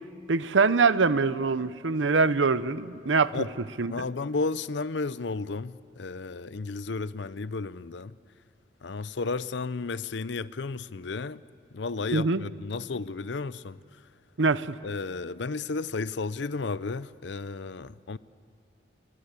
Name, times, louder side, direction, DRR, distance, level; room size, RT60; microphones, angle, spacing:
voice 1, 0.3-3.5 3.8-3.9 12.1-12.4 14.4-14.8, right 4 dB, 90° right, 0.8 m, -24 dB
voice 2, 3.9-8.2 8.8-11.4 11.7-13.8 14.8-18.2, left 3 dB, 75° left, 0.6 m, -33 dB
28.0 x 23.0 x 8.3 m
head